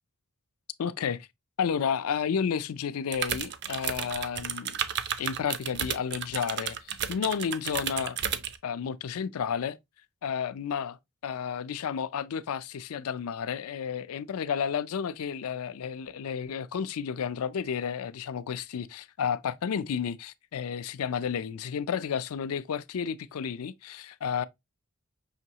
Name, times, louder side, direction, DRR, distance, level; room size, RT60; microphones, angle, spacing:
voice 1, 0.8-1.3 1.6-4.8 5.2-8.2 8.6-9.8 10.2-24.5, left 7 dB, 70° left, 0.4 m, -32 dB
sound 1, 3.1-8.6, right 8 dB, 50° right, 0.5 m, -32 dB
5.7 x 3.0 x 2.7 m
head